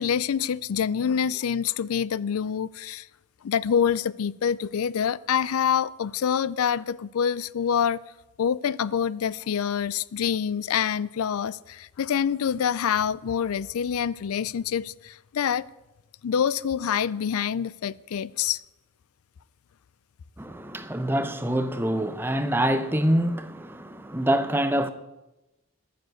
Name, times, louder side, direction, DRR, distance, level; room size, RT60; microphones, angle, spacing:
voice 1, 0.0-3.1 3.4-8.0 8.4-15.7 16.2-18.6, left 8 dB, 85° left, 0.4 m, -26 dB
voice 2, 20.4-24.9, right 1 dB, 10° right, 0.6 m, -25 dB
12.0 x 9.5 x 7.8 m
head